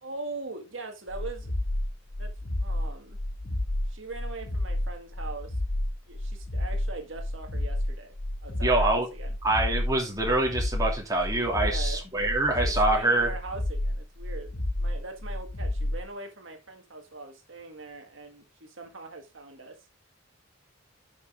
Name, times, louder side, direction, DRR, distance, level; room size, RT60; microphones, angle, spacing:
voice 1, 0.0-1.5 2.2-2.3 2.6-3.2 3.5-5.6 6.1-8.1 8.4-9.4 11.3-12.0 12.6-19.8, right 3 dB, 70° right, 1.7 m, -41 dB
sound 1, 1.1-16.0, left 1 dB, 50° left, 1.0 m, -30 dB
voice 2, 8.6-9.1 9.4-13.3, right 2 dB, 20° right, 2.7 m, -25 dB
10.5 x 6.0 x 3.7 m
head